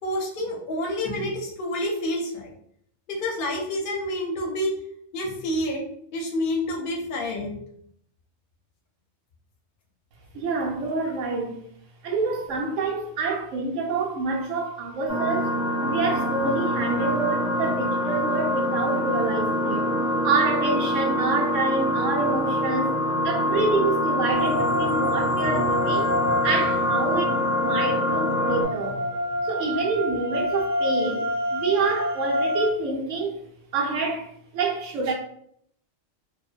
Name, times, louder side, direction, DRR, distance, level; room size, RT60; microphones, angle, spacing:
voice 1, 0.0-2.5 3.1-4.7 5.1-5.8 6.1-7.6, left 1 dB, 55° left, 0.6 m, -28 dB
voice 2, 10.3-11.6 12.0-15.5 15.9-19.9 20.2-23.0 23.2-26.1 26.4-27.4 27.6-29.1 29.4-31.3 31.5-33.4 33.7-35.1, right 3 dB, 75° right, 0.9 m, -27 dB
sound 1, 15.1-28.6, left 1 dB, 5° right, 0.7 m, -25 dB
sound 2, 24.3-32.7, equal, 55° right, 0.6 m, -28 dB
2.5 x 2.1 x 2.4 m
omnidirectional pair, 1.3 m